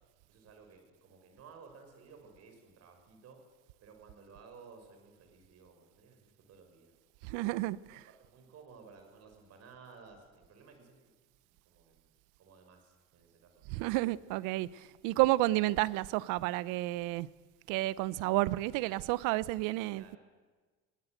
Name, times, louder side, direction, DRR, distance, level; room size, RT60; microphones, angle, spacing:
voice 1, 0.3-3.4 3.8-6.9 7.6-11.1 11.4-12.1 12.4-13.6 19.9-20.2, right 5 dB, 50° right, 6.2 m, -56 dB
voice 2, 7.2-8.0 13.7-17.3 17.7-20.2, right 18 dB, 80° right, 0.8 m, -31 dB
23.0 x 19.0 x 8.0 m
cardioid pair, 120°, 31 cm